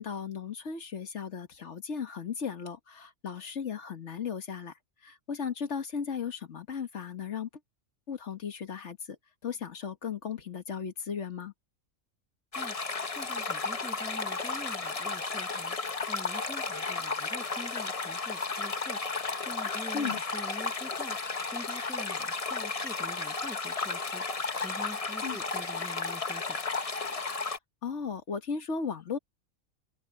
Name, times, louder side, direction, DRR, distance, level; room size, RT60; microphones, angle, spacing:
voice 1, 0.0-4.7 5.0-7.5 8.1-9.2 9.4-11.5 19.9-20.2 25.2-25.4 27.8-29.2, left 6 dB, 60° left, 1.7 m, -36 dB
sound 1, 12.5-27.6, left 4 dB, 30° left, 1.0 m, -33 dB
voice 2, 12.5-15.8 16.1-26.6, left 1 dB, ahead, 0.7 m, -46 dB
omnidirectional pair, 1.4 m